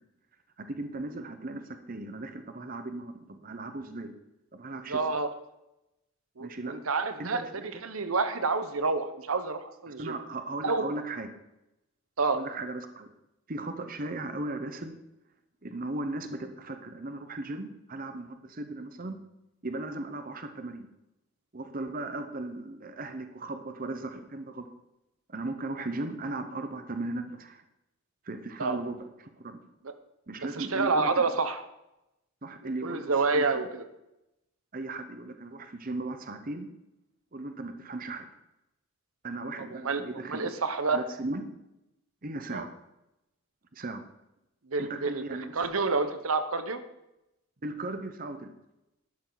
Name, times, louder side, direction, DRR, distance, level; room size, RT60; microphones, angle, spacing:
voice 1, 0.6-1.6 1.9-4.1 4.5-5.0 6.4-6.7 7.2-7.5 10.0-11.3 12.3-13.1 13.5-15.0 15.6-19.2 19.6-20.9 21.5-24.7 25.3-27.6 28.2-29.6 30.3-31.2 32.4-33.6 34.7-36.7 37.3-38.3 39.2-40.5 40.9-41.5 42.2-42.7 43.7-44.0 44.8-45.6 47.6-48.5, right 2 dB, 40° right, 8 dB, 0.9 m, -37 dB
voice 2, 4.9-5.3 6.4-10.2 10.6-10.8 12.2-12.4 28.6-28.8 30.6-31.6 32.6-33.8 39.6-40.0 40.3-41.0 42.5-42.7 44.7-46.8, right 4 dB, 80° right, 10 dB, 1.0 m, -29 dB
12.0 x 12.0 x 4.0 m, 0.90 s
head